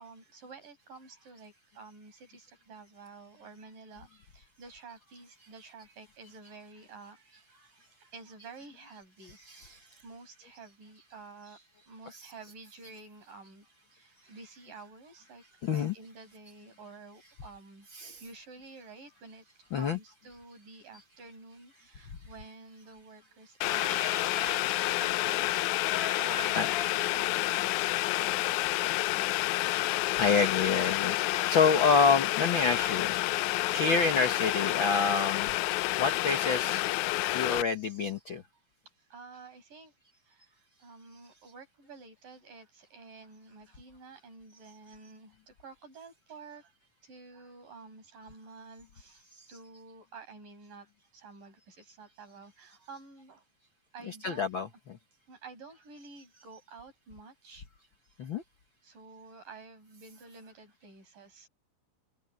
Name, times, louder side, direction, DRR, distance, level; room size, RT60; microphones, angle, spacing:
voice 1, 0.0-9.4 9.7-13.6 13.9-17.9 18.2-30.2 39.1-39.9 40.3-46.7 47.0-53.4 53.9-54.4 55.3-57.7 58.8-61.5, right 4 dB, 70° right, 8.0 m, -51 dB
voice 2, 9.3-10.0 12.1-12.5 14.5-14.6 15.6-15.9 17.9-18.3 19.7-20.0 23.7-24.6 25.4-27.1 30.2-33.2 33.7-35.5 36.0-36.9 37.3-38.4 49.4-49.6 54.0-55.0 58.2-58.4, left 5 dB, 60° left, 1.3 m, -29 dB
Boiling, 23.6-37.6, left 18 dB, 85° left, 1.7 m, -29 dB
omnidirectional pair, 4.0 m